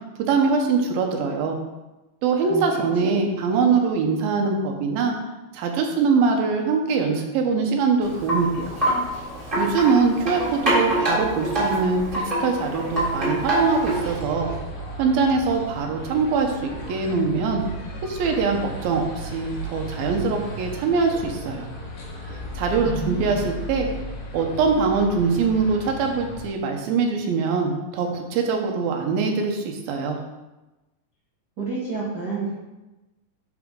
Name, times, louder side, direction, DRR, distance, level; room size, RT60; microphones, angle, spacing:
voice 1, 0.2-1.6 2.2-5.1 5.5-8.8 9.6-14.5 15.0-17.6 18.0-21.7 22.3-23.9 24.3-30.2, right 4 dB, 85° right, 2 dB, 2.8 m, -23 dB
Wind chime, 8.0-14.2, right 1 dB, 15° right, 2.7 m, -25 dB
sound 1, 12.9-26.5, equal, 70° left, 3.1 m, -35 dB
voice 2, 22.8-23.5 31.6-32.5, right 3 dB, 55° right, -7 dB, 1.1 m, -29 dB
11.0 x 4.8 x 3.8 m, 1.1 s
omnidirectional pair, 4.2 m